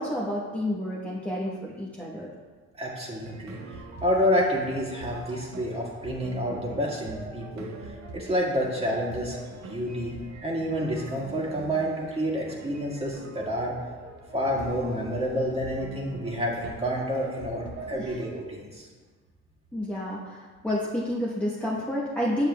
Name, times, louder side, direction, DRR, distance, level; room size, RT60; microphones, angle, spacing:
voice 1, 0.0-2.3 17.9-18.2 19.7-22.5, left 1 dB, 5° left, -6 dB, 1.0 m, -30 dB
voice 2, 2.8-3.6 4.0-9.4 9.6-10.1 10.4-13.7 14.3-18.9, equal, 20° right, -4 dB, 1.8 m, -29 dB
sound 1, 3.2-18.4, right 3 dB, 65° right, 0.9 m, -44 dB
7.3 x 7.1 x 2.2 m, 1.4 s
cardioid pair, 90°, 30 cm